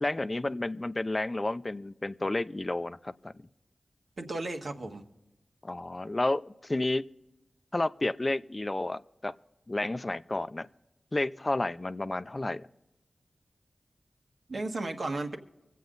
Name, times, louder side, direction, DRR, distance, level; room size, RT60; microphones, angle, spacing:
voice 1, 0.0-3.3 5.6-7.0 7.7-9.3 9.7-10.7 11.1-12.7, left 2 dB, 35° left, 13 dB, 0.5 m, -31 dB
voice 2, 4.2-5.0 14.5-15.4, right 2 dB, 70° right, 3 dB, 1.6 m, -34 dB
25.0 x 8.3 x 4.0 m, 1.0 s
cardioid pair, 50°, 0 cm